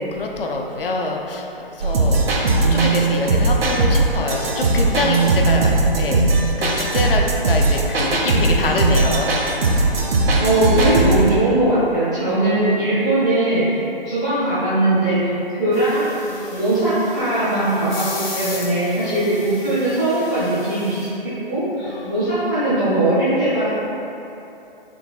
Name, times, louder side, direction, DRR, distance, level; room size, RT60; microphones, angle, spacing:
voice 1, 0.1-2.2 2.6-6.2 6.6-9.4 12.5-12.7 16.3-16.7 19.0-19.3 21.9-22.3, left 3 dB, 65° left, 1 dB, 0.5 m, -26 dB
sound 1, 1.8-11.3, right 2 dB, 75° right, 0.6 m, -18 dB
voice 2, 10.4-13.6 14.0-15.2 15.6-16.0 16.6-23.7, right 1 dB, ahead, -17 dB, 0.3 m, -20 dB
sound 2, 15.7-21.1, left 3 dB, 50° left, 0.9 m, -36 dB
3.8 x 3.6 x 2.3 m, 2.8 s
figure-of-eight pair, 135°, 30 cm